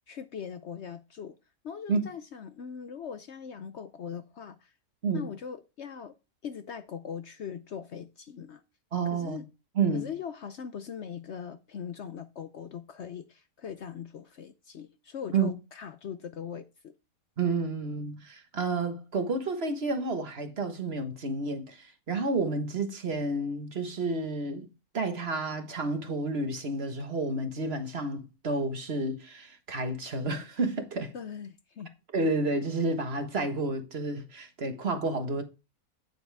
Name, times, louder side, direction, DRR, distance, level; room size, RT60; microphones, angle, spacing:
voice 1, 0.1-1.3 1.6-4.7 5.1-6.1 6.4-8.6 9.1-9.5 9.9-16.9 31.1-31.9, left 7 dB, 60° left, 0.8 m, -40 dB
voice 2, 8.9-9.4 9.7-10.1 15.3-15.5 17.4-24.7 24.9-31.1 32.1-35.4, right 3 dB, 45° right, 1.5 m, -30 dB
9.5 x 8.1 x 3.4 m
omnidirectional pair, 1.5 m